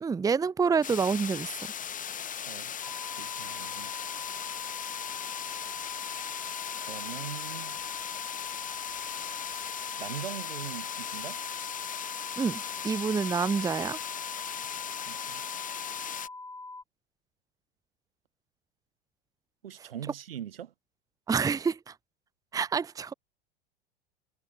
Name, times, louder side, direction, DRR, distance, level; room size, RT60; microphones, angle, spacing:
voice 1, 0.0-1.7 12.4-14.0 21.3-21.9 22.5-23.1, right 5 dB, 10° right, 0.9 m, -28 dB
sound 1, 0.8-16.3, left 8 dB, 25° left, 4.3 m, -38 dB
voice 2, 2.4-3.9 6.9-7.8 10.0-11.4 14.6-14.7 15.1-15.5 19.6-20.7, right 10 dB, 70° right, 7.3 m, -42 dB
sound 2, 2.8-16.8, left 3 dB, 10° left, 3.0 m, -43 dB
figure-of-eight pair, 85°, 30 cm